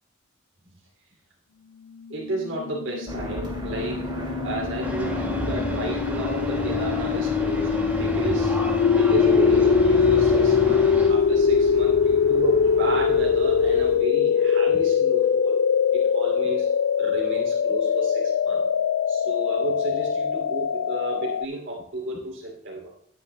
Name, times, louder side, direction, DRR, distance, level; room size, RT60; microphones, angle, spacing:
voice 1, 2.1-4.2 4.4-15.6 15.9-16.7 17.0-18.7 19.1-22.9, right 2 dB, 75° right, -2 dB, 2.7 m, -32 dB
sound 1, 2.3-21.5, left 6 dB, 90° left, 0.3 m, -22 dB
sound 2, 3.1-14.0, right 1 dB, 25° right, 2.4 m, -36 dB
sound 3, 4.8-11.1, equal, 10° right, 2.0 m, -31 dB
17.5 x 9.7 x 2.2 m, 0.66 s
head